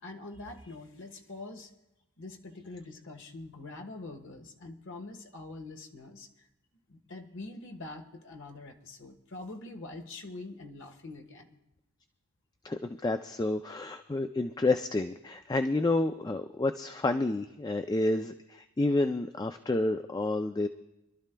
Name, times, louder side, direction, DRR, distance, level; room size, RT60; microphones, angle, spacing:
voice 1, 0.0-1.7 2.2-6.5 6.9-11.6, left 2 dB, 60° left, 3 dB, 1.4 m, -44 dB
voice 2, 12.6-20.7, left 2 dB, 20° left, 8 dB, 0.3 m, -29 dB
26.5 x 12.5 x 2.2 m, 0.93 s
head